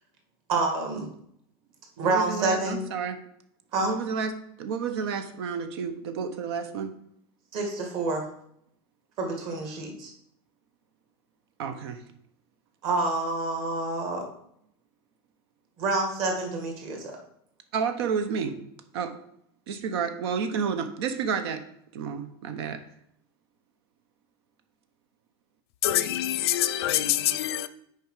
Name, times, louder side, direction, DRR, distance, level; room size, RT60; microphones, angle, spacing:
voice 1, 0.5-1.1 2.0-2.9 3.7-3.9 7.5-8.3 9.2-10.1 12.8-14.3 15.8-17.2, right 3 dB, 45° right, 2.0 m, -28 dB
voice 2, 2.0-3.2 3.8-4.3 4.6-6.9 11.6-12.0 17.7-18.5 18.9-19.2 19.7-21.6 21.9-22.8, right 6 dB, 85° right, 0.9 m, -30 dB
voice 3, 25.8-27.7, left 13 dB, 90° left, 0.6 m, -25 dB
6.7 x 4.8 x 4.9 m
supercardioid pair, 160°, 13 cm